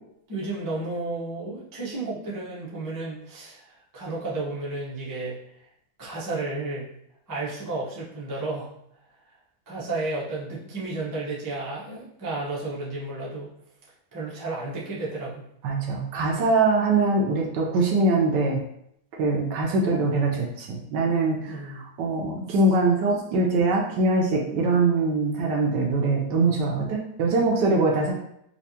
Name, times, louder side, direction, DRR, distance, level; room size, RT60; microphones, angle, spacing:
voice 1, 0.3-5.4 6.0-6.9 7.3-8.7 9.7-13.5 14.1-15.4 21.5-21.8, right 2 dB, 35° right, -8 dB, 0.3 m, -32 dB
voice 2, 15.6-18.6 19.1-28.1, right 3 dB, 70° right, 0 dB, 1.1 m, -23 dB
4.3 x 2.4 x 2.8 m, 0.75 s
omnidirectional pair, 2.1 m